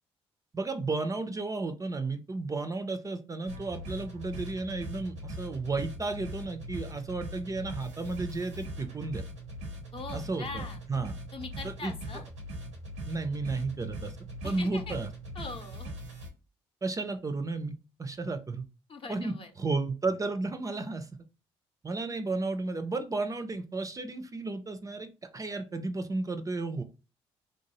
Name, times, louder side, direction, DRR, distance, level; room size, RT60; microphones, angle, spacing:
voice 1, 0.5-9.2 10.1-11.2 11.8-11.9 13.1-14.2 14.4-15.1 16.8-18.7 19.1-21.1 21.8-25.1 25.3-26.8, right 3 dB, 25° right, 8 dB, 0.4 m, -33 dB
sound 1, 3.5-16.3, equal, 85° right, 0.8 m, -41 dB
voice 2, 9.9-10.8 11.3-12.2 14.4-15.0 15.3-15.9 18.9-19.5, left 4 dB, 40° left, 5 dB, 0.7 m, -41 dB
2.8 x 2.1 x 3.0 m, 0.32 s
hypercardioid pair, 45°, 14 cm